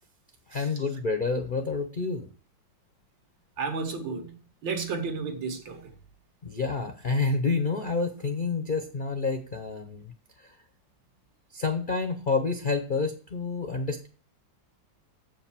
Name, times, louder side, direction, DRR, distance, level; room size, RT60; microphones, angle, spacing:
voice 1, 0.5-2.3 6.4-10.1 10.4-10.5 11.5-14.1, left 4 dB, 50° left, 0.5 m, -28 dB
voice 2, 3.6-4.4 4.6-5.9, right 4 dB, 70° right, 2.1 m, -32 dB
7.4 x 5.2 x 7.4 m
omnidirectional pair, 2.1 m